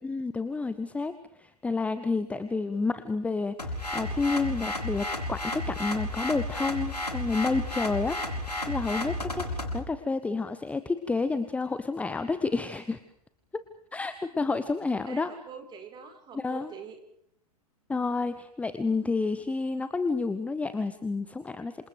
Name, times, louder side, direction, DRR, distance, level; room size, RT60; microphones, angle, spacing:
voice 1, 0.0-8.2 8.7-13.0 13.5-13.6 13.9-15.3 16.3-16.7 17.9-21.9, left 3 dB, 5° left, 12 dB, 1.1 m, -30 dB
voice 2, 2.6-3.0 14.4-14.5 15.1-17.0, right 6 dB, 20° right, 7 dB, 5.2 m, -45 dB
sound 1, 3.6-9.8, left 1 dB, 80° left, 6.5 m, -32 dB
27.5 x 27.5 x 4.9 m, 0.70 s
figure-of-eight pair, 105°, 20 cm